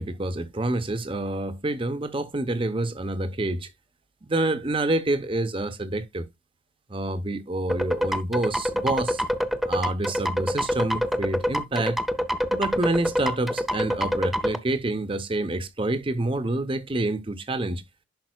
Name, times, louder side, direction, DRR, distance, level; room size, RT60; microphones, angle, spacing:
voice 1, 0.0-3.7 4.2-6.3 6.9-9.2 9.6-12.0 12.5-17.8, right 2 dB, 30° right, 0.8 m, -27 dB
sound 1, 7.7-14.6, equal, ahead, 0.5 m, -26 dB
10.5 x 5.4 x 2.3 m
head